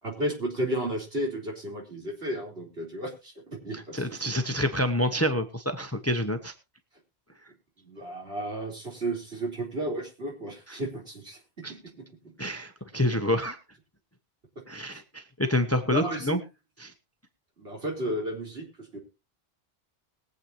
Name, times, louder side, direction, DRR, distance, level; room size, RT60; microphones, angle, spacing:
voice 1, 0.0-4.2 7.8-11.4 11.7-12.3 14.9-15.0 15.8-16.4 17.6-19.0, right 1 dB, 65° right, -1 dB, 4.1 m, -33 dB
voice 2, 3.9-6.5 10.7-10.8 11.6-11.7 12.4-13.6 14.7-16.4 16.8-16.9, left 1 dB, 15° left, 8 dB, 1.0 m, -27 dB
22.0 x 8.0 x 2.9 m, 0.29 s
omnidirectional pair, 1.1 m